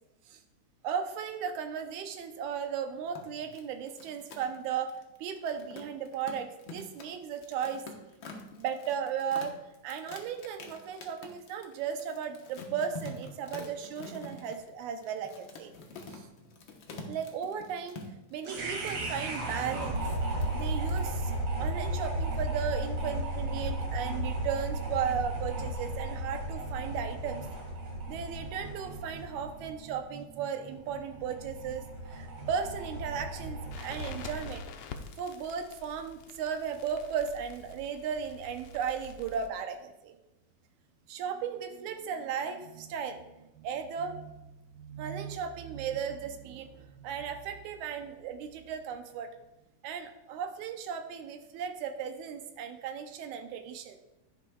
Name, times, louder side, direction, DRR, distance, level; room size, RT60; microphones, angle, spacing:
voice 1, 0.8-4.9 5.2-7.8 8.3-9.5 9.8-15.7 16.1-16.3 17.1-18.0 18.3-20.1 20.5-21.3 21.6-27.5 28.1-34.6 35.2-40.2 41.1-44.4 44.7-49.3 49.8-54.0, right 7 dB, 85° right, 6 dB, 2.2 m, -36 dB
sound 1, 3.0-21.3, left 3 dB, 55° left, 1.4 m, -47 dB
sound 2, 18.4-34.7, right 1 dB, 55° right, 3.0 m, -35 dB
Crackle, 33.7-39.5, left 6 dB, 80° left, 1.3 m, -48 dB
10.5 x 9.9 x 2.3 m, 0.94 s
omnidirectional pair, 3.3 m